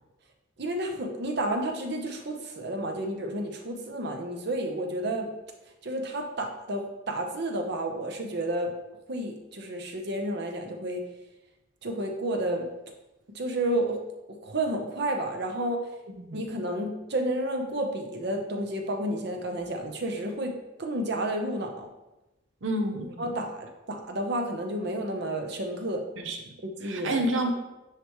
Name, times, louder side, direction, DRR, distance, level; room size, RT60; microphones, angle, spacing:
voice 1, 0.6-5.3 5.8-8.7 9.1-11.0 11.8-12.7 13.3-14.0 14.3-15.8 16.3-21.9 23.2-26.1 26.6-27.2, right 1 dB, 60° right, 3 dB, 0.9 m, -31 dB
voice 2, 22.6-23.4 26.2-26.4 26.8-27.5, right 1 dB, 90° right, 5 dB, 0.8 m, -29 dB
9.7 x 3.3 x 3.1 m, 0.99 s
head